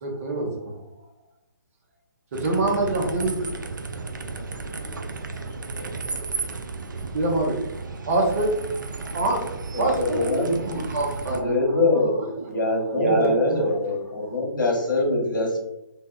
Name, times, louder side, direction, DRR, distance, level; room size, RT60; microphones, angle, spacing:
voice 1, 0.0-0.8 2.3-3.5 7.1-7.6 8.0-13.7 14.2-14.4, right 2 dB, 45° right, -1 dB, 0.7 m, -26 dB
sound 1, 2.3-11.4, right 3 dB, 75° right, 0.4 m, -34 dB
voice 2, 3.0-3.9 4.3-6.2, left 4 dB, 30° left, 5 dB, 0.4 m, -48 dB
voice 3, 9.7-10.6 11.3-12.2 12.5-15.6, left 2 dB, 75° left, 0 dB, 1.0 m, -24 dB
3.3 x 2.1 x 2.3 m, 0.90 s
figure-of-eight pair, 135°, 10 cm